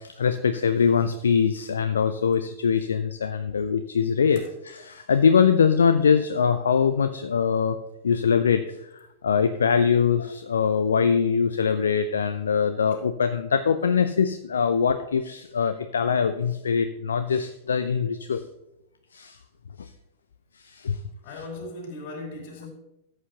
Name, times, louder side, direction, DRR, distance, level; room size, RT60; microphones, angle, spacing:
voice 1, 0.0-7.8 8.0-8.6 9.2-18.4 19.1-19.4 19.8-19.9 20.6-21.0, left 6 dB, 70° left, 0.4 m, -23 dB
voice 2, 21.2-22.7, left 2 dB, 50° left, 3.5 m, -38 dB
13.5 x 8.0 x 2.9 m
figure-of-eight pair, 90°, 0 cm